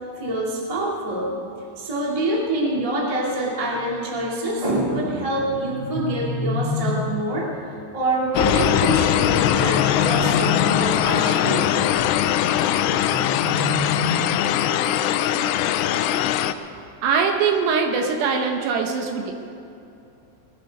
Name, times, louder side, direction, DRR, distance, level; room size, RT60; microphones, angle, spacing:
voice 1, 0.2-1.3 1.8-11.8, right 1 dB, 20° right, -4 dB, 0.9 m, -26 dB
sound 1, 5.5-7.3 9.2-11.0 12.9-14.8, left 3 dB, 30° left, 4.6 m, -28 dB
sound 2, 8.4-16.5, left 11 dB, 85° left, 2.5 m, -21 dB
voice 2, 17.0-19.3, right 5 dB, 75° right, 3 dB, 2.9 m, -22 dB
19.5 x 12.0 x 5.3 m, 2.6 s
omnidirectional pair, 5.4 m